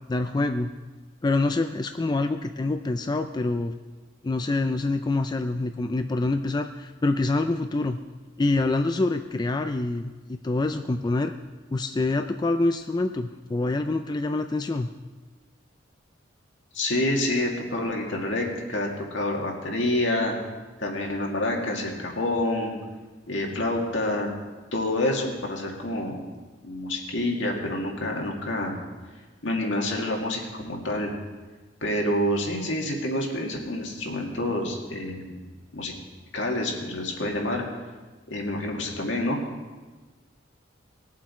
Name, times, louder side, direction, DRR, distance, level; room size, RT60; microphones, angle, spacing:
voice 1, 0.1-0.7 1.2-3.7 4.2-8.0 8.4-11.3 11.7-14.9, left 2 dB, 20° left, 7 dB, 0.3 m, -26 dB
voice 2, 16.7-20.3 20.8-22.8 23.3-24.3 24.7-26.3 26.6-28.8 29.4-31.1 31.8-35.3 35.7-35.9 36.3-37.6 38.3-39.4, left 1 dB, 75° left, 0 dB, 2.1 m, -27 dB
20.0 x 7.4 x 4.4 m, 1.3 s
head